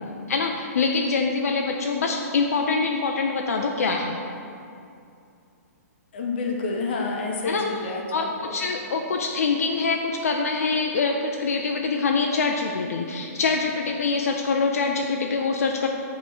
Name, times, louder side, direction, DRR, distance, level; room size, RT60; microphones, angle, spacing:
voice 1, 0.3-4.2 7.4-7.6 8.1-15.9, left 4 dB, 65° left, 2 dB, 0.4 m, -24 dB
voice 2, 6.1-8.5, left 3 dB, 40° left, 0 dB, 0.8 m, -29 dB
8.3 x 3.1 x 3.8 m, 2.6 s
hypercardioid pair, 175°, 9 cm